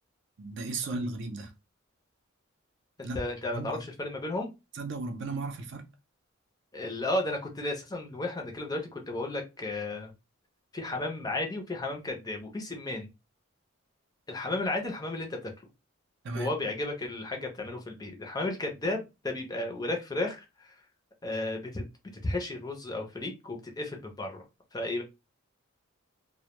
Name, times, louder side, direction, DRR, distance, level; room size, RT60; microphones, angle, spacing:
voice 1, 0.4-1.5 3.0-3.2 3.5-3.7 4.7-5.8 16.2-16.5, right 3 dB, 60° right, 0.5 m, -35 dB
voice 2, 3.1-4.5 6.7-10.1 10.7-13.1 14.3-15.5 16.3-20.8 21.2-21.8 22.1-24.4 24.7-25.0, left 2 dB, 20° left, 0.5 m, -33 dB
2.1 x 2.1 x 2.9 m
head